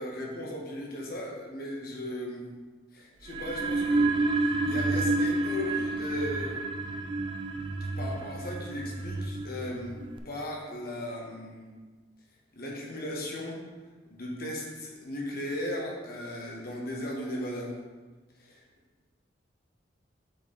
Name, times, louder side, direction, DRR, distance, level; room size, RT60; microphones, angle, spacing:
voice 1, 0.0-2.5 2.9-6.6 8.0-11.7 12.5-13.6 14.1-17.7 18.4-18.6, left 1 dB, 55° left, -2 dB, 1.3 m, -37 dB
sound 1, 3.3-10.2, right 2 dB, 25° right, 0.4 m, -29 dB
6.7 x 4.5 x 4.0 m, 1.4 s
head